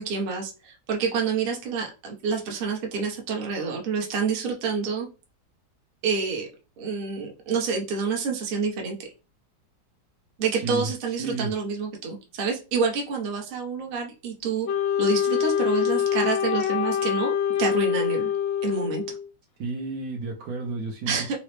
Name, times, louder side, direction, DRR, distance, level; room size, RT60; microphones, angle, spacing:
voice 1, 0.0-5.1 6.0-6.5 6.8-9.0 10.4-17.3 17.6-18.3 18.6-19.2 21.1-21.3, right 5 dB, 50° right, 0 dB, 0.6 m, -28 dB
voice 2, 10.5-11.5 19.6-21.4, right 3 dB, 70° right, 3 dB, 1.0 m, -32 dB
Wind instrument woodwind instrument, 14.7-19.3, left 9 dB, 90° left, 1.4 m, -25 dB
3.9 x 2.0 x 3.1 m, 0.33 s
omnidirectional pair, 2.0 m